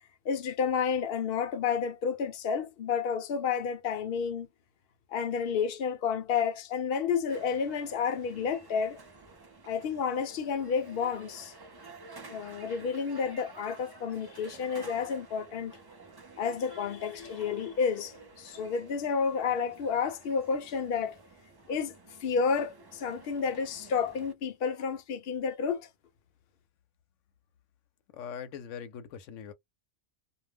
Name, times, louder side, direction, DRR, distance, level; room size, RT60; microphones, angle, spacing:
voice 1, 0.2-4.5 5.1-9.0 9.7-11.5 12.3-15.7 16.4-21.2 21.7-22.0 22.2-25.9, left 6 dB, 60° left, 0.8 m, -30 dB
sound 1, 7.3-24.3, right 3 dB, 30° right, 0.5 m, -51 dB
voice 2, 28.1-29.5, left 7 dB, 90° left, 0.9 m, -41 dB
2.4 x 2.1 x 3.3 m
omnidirectional pair, 1.2 m